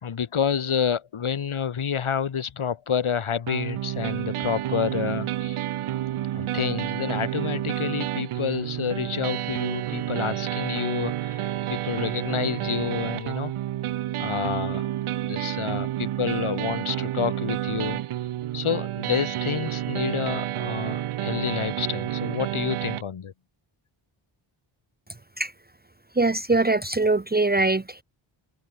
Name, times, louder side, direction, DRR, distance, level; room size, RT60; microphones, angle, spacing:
voice 1, 0.0-5.6 6.3-13.5 14.2-14.9 15.2-18.0 18.5-23.3, left 7 dB, 75° left, 3.6 m, -29 dB
sound 1, 3.5-23.0, right 13 dB, 85° right, 0.7 m, -30 dB
voice 2, 26.1-28.0, right 3 dB, 20° right, 1.2 m, -22 dB
open air
wide cardioid pair, 155°, 50 cm